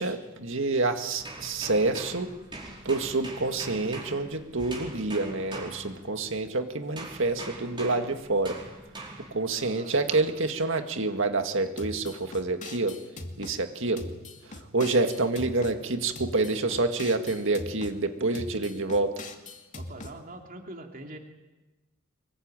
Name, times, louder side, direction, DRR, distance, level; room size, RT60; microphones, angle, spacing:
voice 1, 0.0-2.3 2.9-8.6 9.3-13.0 13.4-14.1 14.5-19.1, right 3 dB, 65° right, 6 dB, 2.0 m, -27 dB
sound 1, 1.2-6.5 7.0-9.5 10.1-10.4, right 2 dB, 25° right, 4.9 m, -42 dB
voice 2, 9.5-9.9 19.7-21.2, right 1 dB, 45° right, 2 dB, 2.9 m, -43 dB
sound 2, 11.8-13.6 14.0-15.8 16.1-18.0 18.3-20.1, left 2 dB, 35° left, 2.6 m, -41 dB
25.0 x 22.5 x 9.0 m, 1.1 s
head